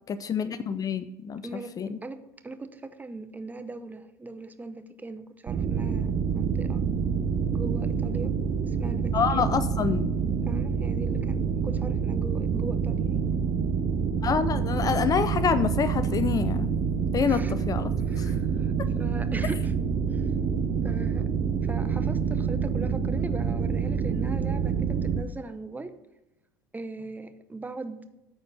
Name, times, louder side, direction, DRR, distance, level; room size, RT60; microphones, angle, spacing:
voice 1, 0.1-1.4 1.8-2.0 9.1-10.1 14.2-16.7 17.1-17.9 18.2-18.3, left 7 dB, 30° left, 13 dB, 0.5 m, -27 dB
voice 2, 1.4-6.8 7.5-8.3 8.7-9.5 9.8-9.9 10.5-13.2 17.2-17.5 18.1-19.7 20.1-20.3 20.8-21.3 21.6-25.9 26.7-28.1, right 2 dB, 15° right, 10 dB, 0.8 m, -40 dB
sound 1, 5.5-25.2, right 6 dB, 40° right, 0.9 m, -27 dB
10.0 x 4.3 x 6.7 m, 0.93 s
hypercardioid pair, 75°, 11 cm